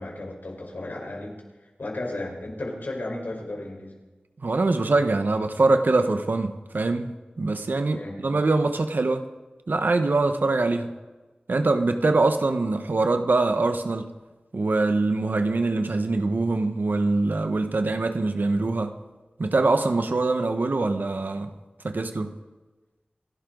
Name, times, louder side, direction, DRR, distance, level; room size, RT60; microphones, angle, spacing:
voice 1, 0.0-1.4 1.8-3.9 7.9-8.2, left 2 dB, 75° left, 0 dB, 4.7 m, -34 dB
voice 2, 4.4-7.1 7.4-9.2 9.7-10.9 11.5-14.1 14.5-19.0 19.4-21.5 21.8-22.4, right 3 dB, 75° right, 8 dB, 1.3 m, -23 dB
28.5 x 12.0 x 4.0 m, 1.2 s
wide cardioid pair, 45°, 3 cm